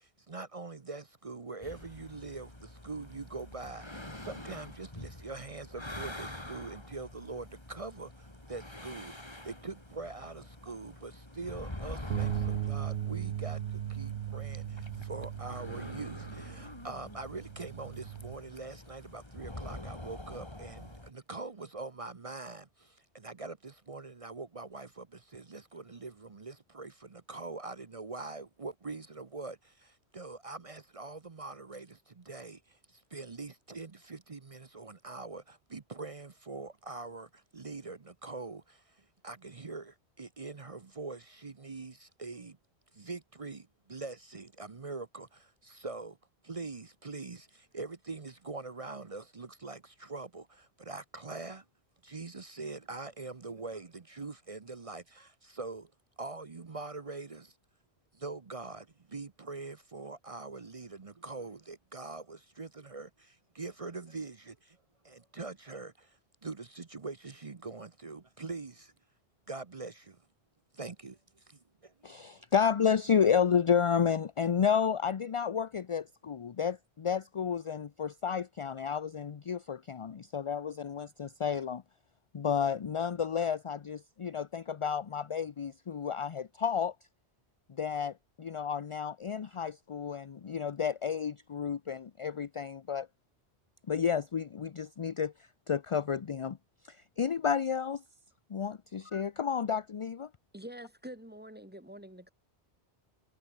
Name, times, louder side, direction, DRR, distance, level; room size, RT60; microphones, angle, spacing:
voice 1, 0.0-9.2 9.4-42.6 42.9-46.2 46.4-51.6 52.0-55.9 56.2-57.6 58.1-64.8 65.0-68.9 69.5-70.2 70.7-72.4, right 3 dB, 35° right, 0.8 m, -43 dB
sound 1, 1.6-21.1, left 1 dB, 25° left, 3.5 m, -46 dB
Bass guitar, 12.1-18.4, right 10 dB, 65° right, 0.9 m, -37 dB
voice 2, 72.0-81.8 82.3-86.9 87.8-93.1 93.9-95.3 95.7-96.6 96.9-98.0 98.5-100.3, left 7 dB, 40° left, 0.5 m, -31 dB
voice 3, 100.5-102.3, right 1 dB, 10° right, 3.1 m, -46 dB
omnidirectional pair, 1.1 m